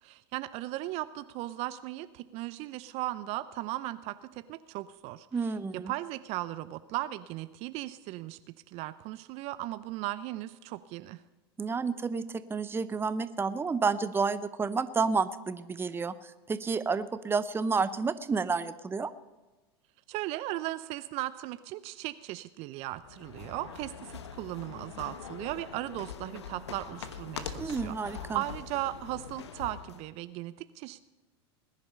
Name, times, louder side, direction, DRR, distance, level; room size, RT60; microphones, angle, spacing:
voice 1, 0.0-5.5 5.9-8.4 8.7-11.2 20.1-31.0, right 16 dB, 50° right, 14 dB, 0.6 m, -37 dB
voice 2, 5.3-5.9 11.6-19.1 27.6-28.4, right 4 dB, 15° right, 13 dB, 0.8 m, -30 dB
sound 1, 22.9-30.1, left 7 dB, 85° left, 1.1 m, -43 dB
19.5 x 10.5 x 5.5 m, 1.2 s
hypercardioid pair, 90°, 14 cm